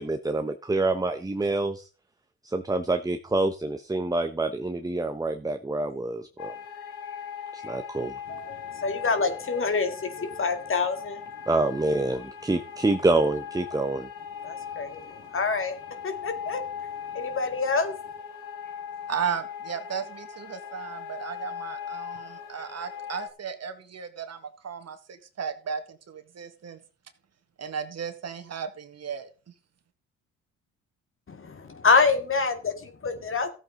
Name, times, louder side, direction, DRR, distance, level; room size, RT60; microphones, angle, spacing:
voice 1, 0.0-1.9 2.4-6.5 7.5-8.1 11.5-14.1, right 2 dB, 10° right, 8 dB, 1.0 m, -27 dB
sound 1, 6.4-23.3, left 7 dB, 75° left, 1.9 m, -39 dB
voice 2, 8.3-11.2 14.4-15.8 16.0-16.6 17.1-18.0 31.3-33.5, left 4 dB, 35° left, 7 dB, 2.2 m, -26 dB
voice 3, 19.1-26.8 27.6-29.3, right 7 dB, 45° right, 8 dB, 2.0 m, -35 dB
14.5 x 8.2 x 3.9 m, 0.36 s
supercardioid pair, 65°, 35 cm